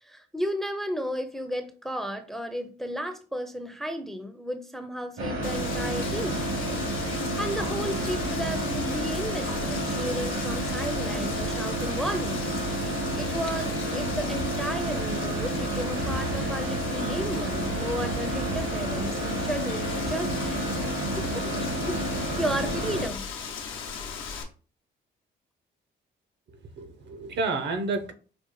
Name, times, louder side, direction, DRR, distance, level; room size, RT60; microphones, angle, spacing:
voice 1, 0.0-6.5 7.1-12.5 13.2-20.3 21.2-22.0 22.4-23.3, equal, ahead, 0.4 m, -33 dB
sound 1, 5.2-23.1, right 1 dB, 80° right, 1.4 m, -30 dB
Wind, 5.4-24.4, left 6 dB, 90° left, 0.7 m, -38 dB
voice 2, 26.5-28.1, right 3 dB, 60° right, 0.7 m, -30 dB
5.0 x 2.0 x 3.1 m
cardioid pair, 90°, 20 cm